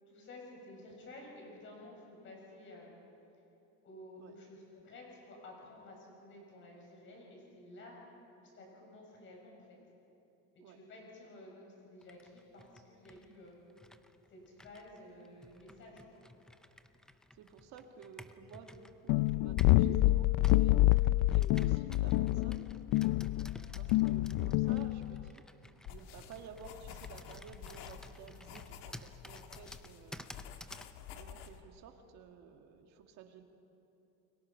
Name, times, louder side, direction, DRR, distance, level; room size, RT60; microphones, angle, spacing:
voice 1, 0.1-3.0 3.8-8.0 8.4-9.8 10.7-13.6 14.3-16.2 23.7-24.0, left 1 dB, 35° left, -1 dB, 6.9 m, -53 dB
Computer keyboard, 12.0-19.9 20.4-31.0, left 1 dB, ahead, 0.4 m, -54 dB
voice 2, 17.3-21.0 21.3-22.7 23.7-25.4 25.9-30.3 31.1-33.4, right 7 dB, 55° right, 4 dB, 2.1 m, -54 dB
sound 1, 19.1-25.3, left 17 dB, 65° left, 0.4 m, -27 dB
sound 2, 25.9-31.6, left 9 dB, 80° left, 1.6 m, -50 dB
30.0 x 22.5 x 5.7 m, 2.9 s
cardioid pair, 170°, 33 cm